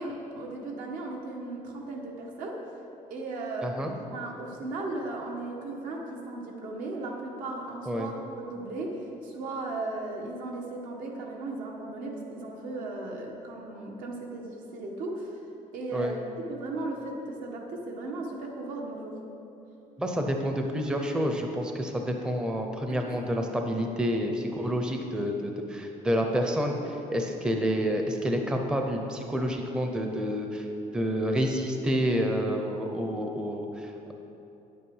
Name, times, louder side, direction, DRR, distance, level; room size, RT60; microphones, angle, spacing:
voice 1, 0.0-2.6 3.1-15.4 15.7-19.2 22.9-23.2, right 2 dB, 75° right, 0 dB, 1.7 m, -36 dB
voice 2, 3.6-3.9 7.9-8.1 15.9-16.1 20.0-30.7 30.9-34.1, equal, 5° right, 3 dB, 0.6 m, -29 dB
9.3 x 8.5 x 5.5 m, 3.0 s
cardioid pair, 165°, 14 cm